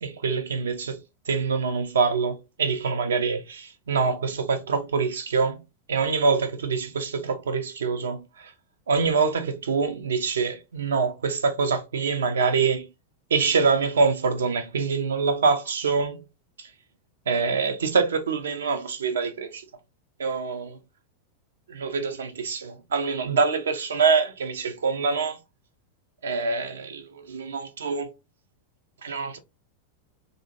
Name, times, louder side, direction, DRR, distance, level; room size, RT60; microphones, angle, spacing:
voice 1, 0.0-5.6 5.9-8.5 8.9-12.9 13.3-16.2 16.6-16.7 17.3-19.6 20.2-20.8 21.7-25.4 26.2-28.1 29.0-29.4, right 5 dB, 65° right, 0.5 m, -25 dB
2.6 x 2.5 x 2.7 m
figure-of-eight pair, 90°, 0 cm